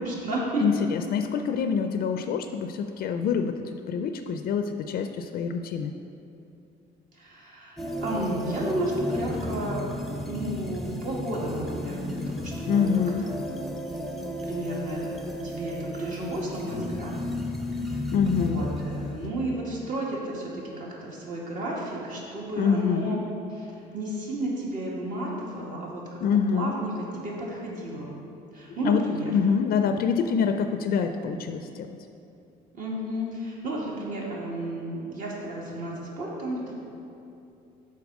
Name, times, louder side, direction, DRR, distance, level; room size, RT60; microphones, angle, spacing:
voice 1, 0.0-0.6 7.1-9.9 10.3-12.9 13.2-13.3 14.4-15.1 15.4-17.1 17.8-23.2 23.6-26.2 26.5-28.2 28.5-29.3 32.7-36.7, right 1 dB, 50° right, -4 dB, 1.9 m, -32 dB
voice 2, 0.6-3.5 3.9-5.9 12.6-13.3 18.1-18.6 22.6-23.2 26.2-26.7 28.8-29.1 29.3-32.0, left 6 dB, 60° left, 7 dB, 0.4 m, -25 dB
sound 1, 7.8-19.3, left 1 dB, ahead, 0.6 m, -33 dB
7.1 x 4.4 x 6.1 m, 2.7 s
cardioid pair, 110°, 17 cm